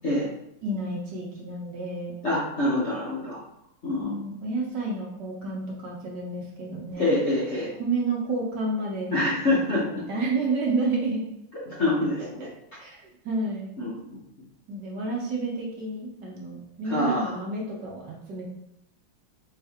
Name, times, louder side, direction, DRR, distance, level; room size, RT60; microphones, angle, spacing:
voice 1, 0.6-2.1 4.0-7.1 7.8-9.3 9.9-11.3 12.8-13.0 13.2-13.7 14.7-18.4, right 3 dB, 65° right, -2 dB, 1.4 m, -30 dB
voice 2, 2.2-3.4 3.8-4.1 6.9-7.7 9.1-10.0 11.7-12.5 13.8-13.9 16.8-17.3, left 1 dB, 45° left, -8 dB, 1.0 m, -25 dB
3.9 x 3.6 x 3.5 m, 0.80 s
omnidirectional pair, 2.3 m